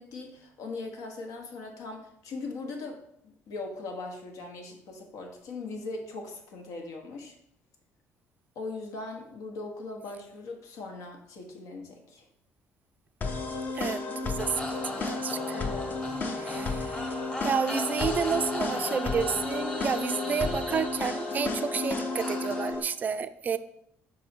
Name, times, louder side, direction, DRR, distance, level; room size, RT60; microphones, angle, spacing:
voice 1, 0.0-7.3 8.5-12.2 15.5-16.3, left 3 dB, 80° left, 3 dB, 1.1 m, -40 dB
sound 1, 13.2-22.8, left 3 dB, 35° left, 0.7 m, -32 dB
voice 2, 13.7-15.6 16.4-17.1 17.4-23.6, right 6 dB, 30° right, 12 dB, 0.3 m, -31 dB
sound 2, 14.4-22.7, left 1 dB, 15° left, 1.0 m, -38 dB
5.3 x 4.2 x 4.3 m, 0.76 s
cardioid pair, 125°, 5 cm